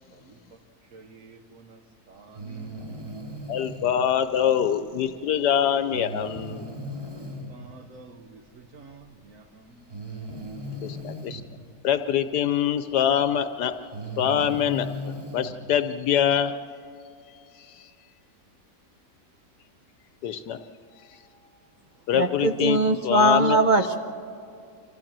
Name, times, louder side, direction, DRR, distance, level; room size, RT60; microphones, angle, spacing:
voice 1, 0.9-1.8 2.1-2.8 7.1-9.7, right 4 dB, 55° right, 7 dB, 1.3 m, -49 dB
Breathing, 2.3-3.9 5.9-7.5 8.9-9.0 9.9-11.4 13.0-13.1 13.8-15.5, equal, 20° right, 2.6 m, -37 dB
voice 2, 3.5-6.6 10.8-11.4 11.8-13.7 14.2-14.9 15.3-16.5 17.6-17.9 20.2-20.6 21.1-21.2 22.1-23.6, left 9 dB, 80° left, 10 dB, 1.2 m, -24 dB
voice 3, 22.2-24.0, right 1 dB, 40° right, 6 dB, 0.7 m, -21 dB
26.0 x 15.0 x 7.4 m, 2.4 s
omnidirectional pair, 1.8 m